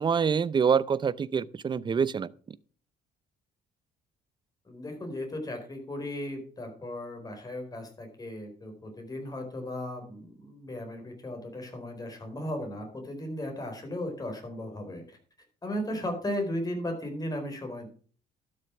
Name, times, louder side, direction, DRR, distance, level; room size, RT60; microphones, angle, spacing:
voice 1, 0.0-2.3, right 6 dB, 25° right, 0.5 m, -26 dB
voice 2, 4.6-15.2 15.6-17.9, left 1 dB, 20° left, 4.6 m, -36 dB
12.0 x 6.8 x 6.0 m
cardioid pair, 110°, 17 cm